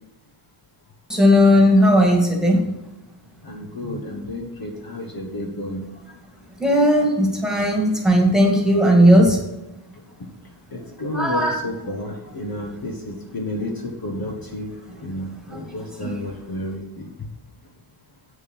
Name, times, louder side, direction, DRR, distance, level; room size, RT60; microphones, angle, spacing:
voice 1, 1.1-2.7 6.6-9.4 11.1-11.6 16.0-16.1, equal, ahead, 0 dB, 2.0 m, -16 dB
voice 2, 3.4-5.9 10.2-10.3 10.7-17.1, left 1 dB, 45° left, 2 dB, 1.3 m, -31 dB
8.4 x 6.4 x 5.5 m, 0.96 s
wide cardioid pair, 125°, 50 cm